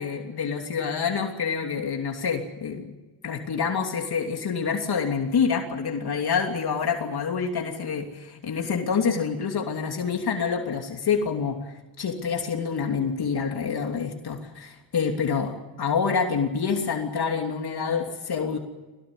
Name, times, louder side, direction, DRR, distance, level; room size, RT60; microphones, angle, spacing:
voice 1, 0.0-2.9 3.2-11.6 12.0-18.6, left 6 dB, 65° left, 3 dB, 3.1 m, -27 dB
22.0 x 18.5 x 9.9 m, 1.2 s
cardioid pair, 80°, 42 cm